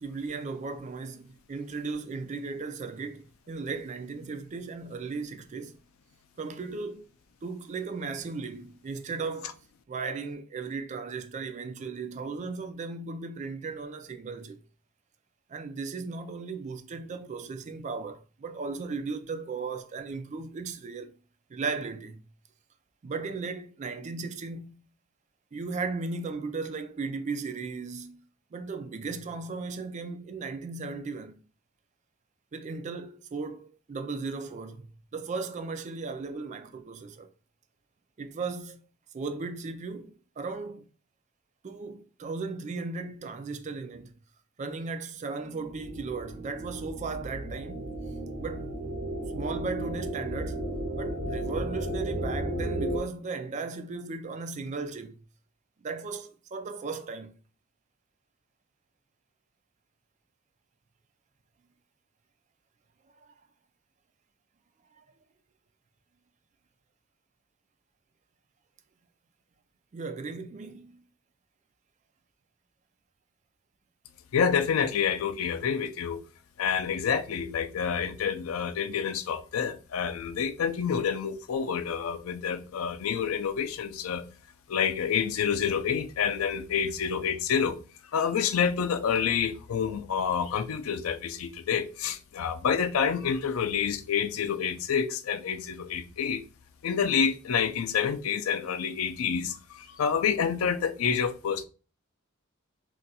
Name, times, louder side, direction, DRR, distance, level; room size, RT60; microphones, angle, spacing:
voice 1, 0.0-5.8 6.4-7.0 7.4-9.6 9.9-14.6 15.5-21.2 21.5-22.2 23.0-24.9 25.5-28.2 28.5-31.4 32.5-34.9 35.1-37.3 38.2-38.9 39.1-40.1 40.4-40.9 41.6-44.1 44.6-47.9 48.4-48.8 49.4-50.7 51.0-55.2 55.8-57.3 63.2-63.3 64.9-65.0 69.9-71.0, right 4 dB, 35° right, 0.3 m, -36 dB
sound 1, 45.4-53.0, right 1 dB, 70° right, 1.0 m, -34 dB
voice 2, 74.3-76.2 76.6-84.3 84.7-87.8 88.1-96.4 96.8-101.6, left 7 dB, 80° left, 0.4 m, -28 dB
2.5 x 2.2 x 4.0 m
head